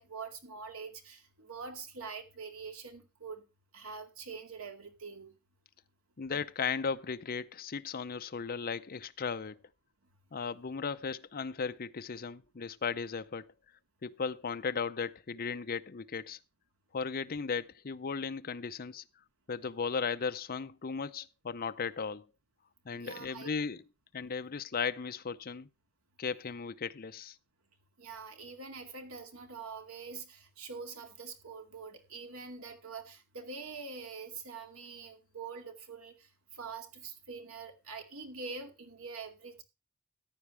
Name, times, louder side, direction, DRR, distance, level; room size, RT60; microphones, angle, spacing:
voice 1, 0.0-3.4 3.7-5.4 22.9-23.5 28.0-39.6, right 4 dB, 80° right, 2.3 m, -45 dB
voice 2, 6.2-9.6 10.3-13.5 14.0-16.4 16.9-19.0 19.5-22.3 22.9-23.8 24.1-25.7 26.2-27.4, left 5 dB, 45° left, 0.6 m, -36 dB
14.5 x 10.0 x 3.3 m
head